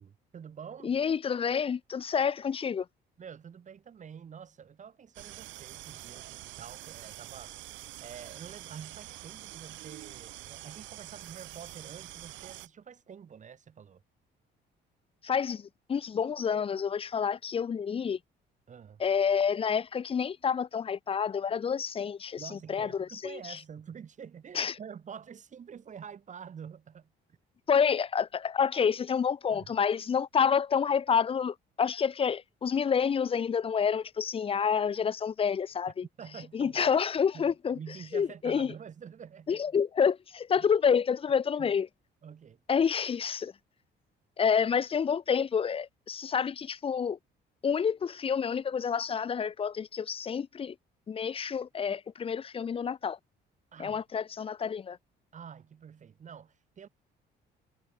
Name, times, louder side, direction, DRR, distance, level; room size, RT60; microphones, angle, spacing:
voice 1, 0.0-1.0 3.2-7.5 8.0-14.0 18.7-19.0 22.4-27.1 29.5-29.8 36.2-36.9 37.3-39.6 40.5-40.7 41.6-41.7 42.2-42.6 53.7-54.0 55.3-56.9, right 7 dB, 40° right, 6.7 m, -47 dB
voice 2, 0.8-2.9 15.2-18.2 19.0-23.6 24.5-24.8 27.7-36.0 36.5-37.8 38.1-38.7 39.5-41.9 42.7-43.5 44.4-47.2 47.6-50.7 51.1-53.2 53.8-55.0, left 7 dB, 30° left, 0.6 m, -28 dB
sound 1, 5.1-12.7, right 16 dB, 85° right, 5.8 m, -46 dB
cardioid pair, 130°, 19 cm